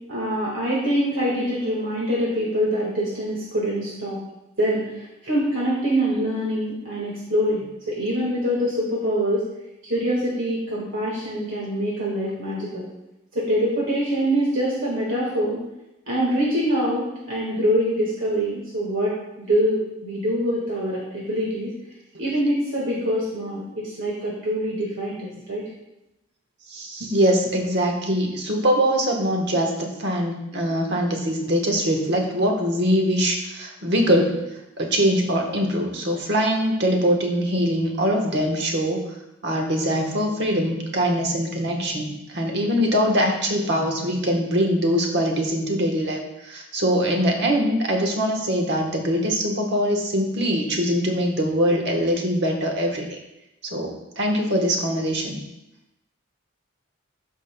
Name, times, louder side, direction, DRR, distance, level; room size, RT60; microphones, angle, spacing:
voice 1, 0.1-4.2 4.6-7.6 7.9-9.5 9.8-12.8 13.3-15.6 16.1-21.7 22.2-25.6, equal, 75° right, -5 dB, 1.7 m, -24 dB
voice 2, 26.7-34.4 34.8-39.0 39.4-53.2 53.6-55.4, equal, 55° right, 2 dB, 1.2 m, -23 dB
13.0 x 5.5 x 2.2 m, 0.91 s
head